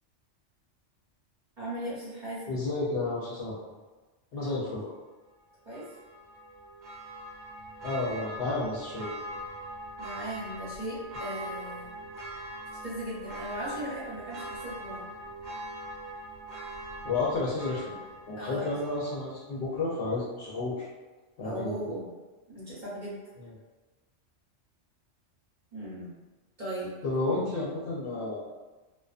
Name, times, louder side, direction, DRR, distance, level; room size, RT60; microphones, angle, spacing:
voice 1, 1.6-2.5 4.4-4.8 5.6-5.9 10.0-11.9 12.8-15.1 18.4-18.7 21.4-22.1 22.5-23.2 25.7-26.1 26.6-26.9, right 1 dB, 45° right, -9 dB, 0.8 m, -38 dB
voice 2, 2.5-3.6 4.3-4.9 7.8-9.1 17.0-18.0 18.3-20.9 21.4-22.0 23.4-23.5 27.0-28.5, left 3 dB, 60° left, -6 dB, 0.7 m, -31 dB
Church bell, 5.7-19.4 19.7-19.8, right 1 dB, 70° right, 0.9 m, -41 dB
2.4 x 2.2 x 2.4 m, 1.2 s
omnidirectional pair, 1.3 m